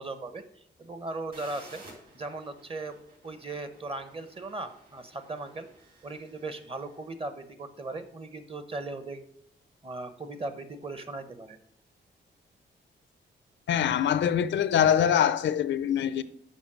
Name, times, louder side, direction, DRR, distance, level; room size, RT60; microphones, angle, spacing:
voice 1, 0.0-1.8 2.1-5.7 6.0-9.2 9.8-11.6, right 2 dB, 30° right, 0.9 m, -38 dB
sound 1, 1.3-7.0, right 2 dB, 50° right, 3.2 m, -54 dB
voice 2, 13.7-16.2, left 9 dB, 80° left, 0.5 m, -24 dB
7.2 x 5.4 x 6.1 m
cardioid pair, 90°, 19 cm